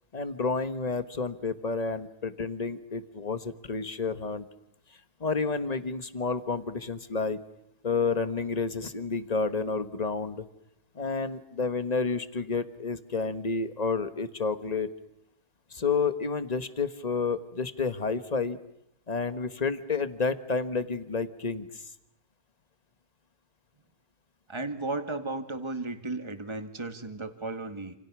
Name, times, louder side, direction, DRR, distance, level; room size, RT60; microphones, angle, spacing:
voice 1, 0.1-4.5 5.2-7.4 7.8-10.5 10.9-14.9 15.7-18.6 19.1-21.8, left 4 dB, 25° left, 10 dB, 1.4 m, -30 dB
voice 2, 24.5-28.0, right 2 dB, 20° right, 7 dB, 2.0 m, -34 dB
28.5 x 28.5 x 6.2 m, 0.82 s
omnidirectional pair, 1.7 m